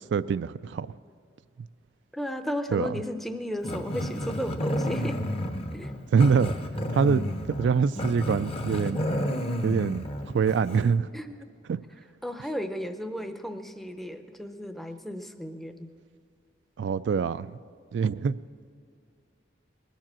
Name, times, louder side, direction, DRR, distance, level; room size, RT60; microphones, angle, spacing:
voice 1, 0.1-1.0 2.7-2.9 6.1-6.5 6.9-9.1 9.6-10.0 10.3-11.1 11.7-11.8 16.8-17.6 17.9-18.4, right 6 dB, 75° right, 14 dB, 0.3 m, -24 dB
voice 2, 2.1-5.2 5.7-5.9 11.1-11.5 12.2-15.9, equal, ahead, 8 dB, 0.6 m, -34 dB
Growling, 3.6-11.0, equal, 30° left, 0.8 m, -31 dB
20.5 x 7.4 x 7.5 m, 2.3 s
head